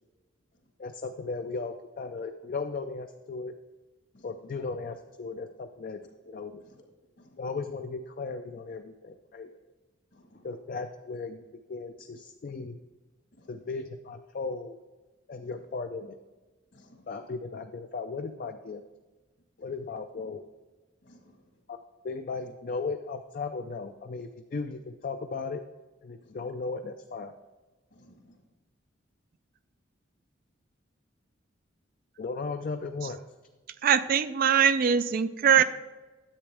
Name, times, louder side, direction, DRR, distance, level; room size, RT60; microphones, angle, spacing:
voice 1, 0.8-3.5 4.2-6.0 6.3-6.6 7.4-9.5 10.4-12.8 13.5-14.8 15.3-16.2 17.1-18.8 19.6-20.4 21.7-21.8 22.0-25.6 26.0-27.3 32.2-33.2, left 4 dB, 45° left, 0.4 m, -36 dB
voice 2, 10.1-10.5 13.4-13.5 16.7-17.1 21.0-21.4 26.2-26.4 27.9-28.4, left 1 dB, 60° left, 1.5 m, -58 dB
voice 3, 33.8-35.6, right 8 dB, 45° right, 0.3 m, -22 dB
10.5 x 7.8 x 3.4 m
head